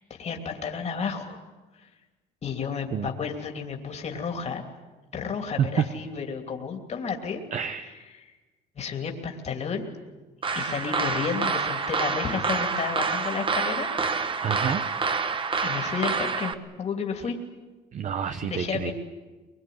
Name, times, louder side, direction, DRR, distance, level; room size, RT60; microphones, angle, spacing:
voice 1, 0.0-1.4 2.4-4.6 5.1-7.4 7.8-7.9 8.2-8.4 8.8-9.9 10.5-13.9 15.6-17.4 18.5-18.9, left 6 dB, 40° left, 3 dB, 2.9 m, -32 dB
voice 2, 7.5-7.9 14.4-14.8 17.9-18.9, right 8 dB, 45° right, 9 dB, 1.0 m, -28 dB
sound 1, 10.4-16.5, right 4 dB, 30° right, 1.3 m, -27 dB
23.0 x 22.0 x 9.4 m, 1.2 s
cardioid pair, 110°, 17 cm